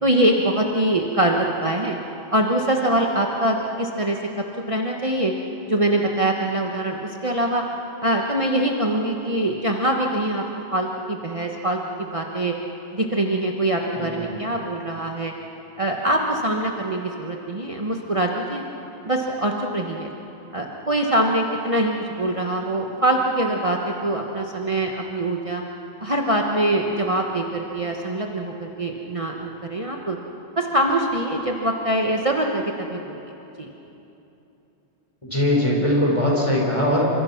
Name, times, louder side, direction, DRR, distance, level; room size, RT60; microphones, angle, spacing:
voice 1, 0.0-2.0 2.3-4.2 4.7-5.3 5.7-7.6 8.0-10.4 10.7-12.5 12.9-15.3 15.8-18.6 19.0-20.1 20.5-25.6 26.0-30.2 30.6-33.2 33.6-33.7, right 1 dB, 30° right, 0 dB, 1.4 m, -23 dB
voice 2, 14.0-14.4 35.3-37.1, left 1 dB, 25° left, -3 dB, 5.5 m, -21 dB
28.5 x 25.5 x 6.0 m, 2.9 s
omnidirectional pair, 1.2 m